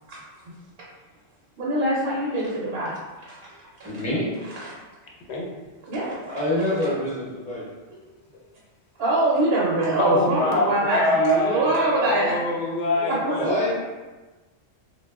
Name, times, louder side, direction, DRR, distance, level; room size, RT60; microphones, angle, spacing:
voice 1, 1.6-3.0 3.3-3.4 3.8-4.0 4.4-4.7 5.9-6.4 9.0-12.3 13.0-13.7, right 2 dB, 60° right, -6 dB, 0.7 m, -24 dB
voice 2, 3.8-4.3 6.2-7.6 13.3-13.7, left 1 dB, 10° left, -7 dB, 0.6 m, -26 dB
voice 3, 10.0-13.4, left 1 dB, 70° left, -3 dB, 0.8 m, -24 dB
3.0 x 2.2 x 2.3 m, 1.2 s
omnidirectional pair, 1.3 m